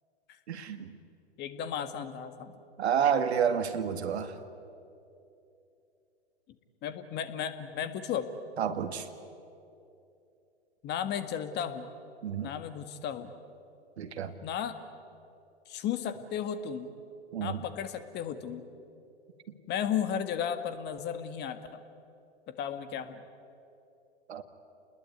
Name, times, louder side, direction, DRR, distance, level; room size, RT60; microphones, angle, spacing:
voice 1, 0.5-0.9 2.8-4.3 8.6-9.0 12.2-12.5 14.0-14.3 17.3-17.6 24.3-24.4, right 8 dB, 70° right, 8 dB, 2.2 m, -29 dB
voice 2, 1.4-2.6 6.8-8.3 10.8-11.9 12.4-13.3 14.4-14.8 15.7-16.9 17.4-18.6 19.7-21.8 22.6-23.2, left 8 dB, 30° left, 10 dB, 1.8 m, -34 dB
29.5 x 20.5 x 9.4 m, 2.7 s
hypercardioid pair, 115°, 34 cm